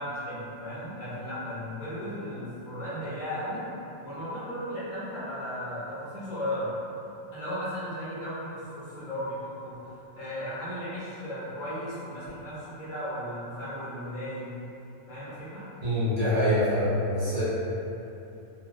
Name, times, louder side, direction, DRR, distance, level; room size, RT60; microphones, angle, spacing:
voice 1, 0.0-3.6 4.0-6.7 7.3-14.6 15.1-15.6, equal, 40° left, -12 dB, 1.1 m, -35 dB
voice 2, 15.8-17.4, equal, 40° right, -12 dB, 1.1 m, -25 dB
2.7 x 2.3 x 2.2 m, 2.8 s
omnidirectional pair, 1.3 m